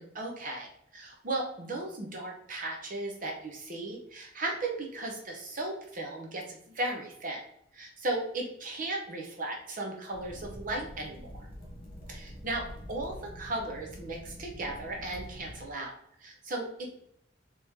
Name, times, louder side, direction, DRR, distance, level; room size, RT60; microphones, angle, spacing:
voice 1, 0.0-7.4 7.7-11.5 12.1-15.9 16.2-16.7, right 2 dB, 45° right, 1 dB, 0.8 m, -36 dB
sound 1, 10.1-15.7, equal, 30° left, 1.4 m, -46 dB
4.2 x 3.0 x 3.5 m, 0.73 s
head